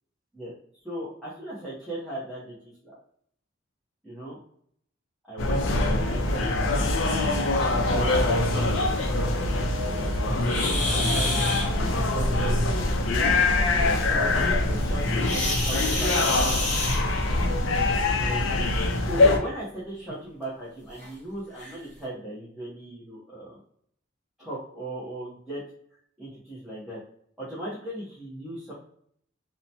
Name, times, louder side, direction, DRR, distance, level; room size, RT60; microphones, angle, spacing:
voice 1, 0.8-2.9 4.0-4.4 5.3-5.6 6.0-6.7 7.7-9.3 9.9-12.9 13.7-16.4 18.2-18.6 19.0-23.6 24.4-25.6 26.2-27.0 27.4-28.7, right 1 dB, ahead, -10 dB, 0.7 m, -38 dB
sound 1, 5.4-19.4, left 2 dB, 75° left, 0.4 m, -24 dB
sound 2, 10.4-11.7 15.2-17.4 18.7-18.8 19.4-19.5 20.1-20.2 21.0-21.1 21.6-21.7, left 2 dB, 40° left, 0.9 m, -29 dB
2.8 x 2.1 x 2.6 m, 0.65 s
head